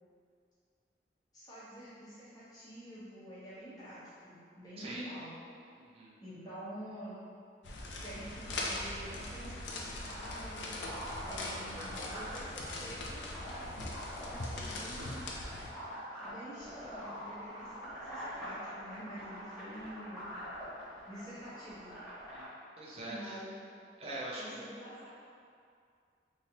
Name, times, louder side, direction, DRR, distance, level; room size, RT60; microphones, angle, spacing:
voice 1, 1.3-5.4 6.2-7.2 8.0-10.9 11.3-13.9 14.2-15.3 16.2-20.3 21.1-21.9 23.1-23.5 24.4-25.1, equal, 20° left, -11 dB, 0.9 m, -47 dB
voice 2, 5.8-6.2 22.3-22.5 22.8-23.4 24.0-24.6, right 1 dB, 35° right, -6 dB, 0.6 m, -43 dB
sound 1, 7.6-15.7, left 2 dB, 80° left, 0.4 m, -41 dB
sound 2, 10.0-22.5, equal, 5° right, 1.3 m, -45 dB
3.1 x 2.7 x 2.8 m, 2.3 s
head